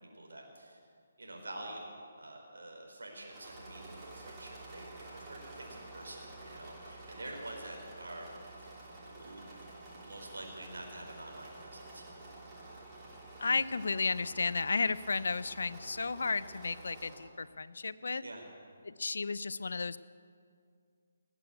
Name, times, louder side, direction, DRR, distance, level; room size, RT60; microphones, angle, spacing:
voice 1, 0.0-0.8 1.2-1.9 2.2-8.3 8.6-12.2 18.2-18.4, right 1 dB, 75° right, 0 dB, 4.5 m, -47 dB
Engine / Mechanisms, 3.1-17.4, right 2 dB, 20° right, 2.8 m, -50 dB
voice 2, 13.4-18.2 18.8-20.0, left 4 dB, 70° left, 16 dB, 0.6 m, -33 dB
19.5 x 8.4 x 8.2 m, 2.2 s
figure-of-eight pair, 145°, 0 cm